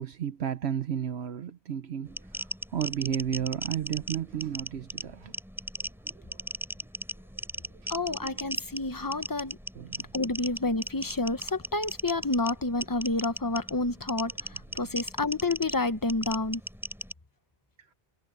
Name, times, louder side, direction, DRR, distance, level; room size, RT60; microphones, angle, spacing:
voice 1, 0.0-5.3 5.8-6.6 7.7-8.3 9.7-10.1 14.3-14.4 14.7-15.0 17.8-17.9, right 9 dB, 75° right, 1.1 m, -34 dB
sound 1, 2.1-17.1, equal, ahead, 4.3 m, -38 dB
voice 2, 7.9-9.6 10.1-14.3 14.7-16.6, left 2 dB, 20° left, 0.9 m, -29 dB
omnidirectional pair, 1.1 m